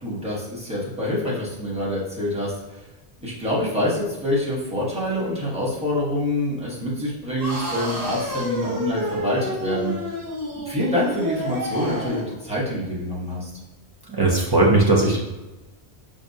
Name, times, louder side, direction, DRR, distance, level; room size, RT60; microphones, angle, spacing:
voice 1, 0.0-2.8 3.2-9.9 10.5-13.5, left 1 dB, 5° right, -7 dB, 1.0 m, -26 dB
sound 1, 7.4-12.3, equal, 70° right, 1.2 m, -29 dB
voice 2, 14.1-15.2, right 2 dB, 30° right, -4 dB, 0.4 m, -18 dB
5.1 x 2.3 x 2.7 m, 1.1 s
omnidirectional pair, 1.1 m